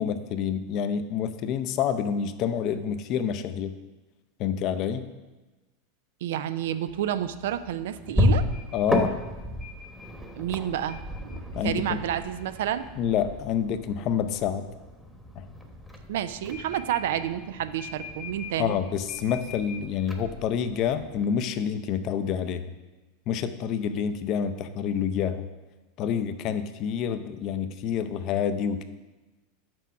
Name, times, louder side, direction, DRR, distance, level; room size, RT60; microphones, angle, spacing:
voice 1, 0.0-3.7 4.4-5.1 8.7-9.1 11.6-12.0 13.0-14.7 15.4-15.5 18.6-22.6 23.3-25.5 26.0-28.8, left 8 dB, 50° left, 11 dB, 0.5 m, -28 dB
voice 2, 6.2-8.4 10.4-12.8 16.1-18.7, right 11 dB, 70° right, 12 dB, 0.4 m, -30 dB
sound 1, 6.9-21.3, left 1 dB, ahead, 1.0 m, -33 dB
6.1 x 4.5 x 5.9 m, 1.2 s
hypercardioid pair, 95°, 0 cm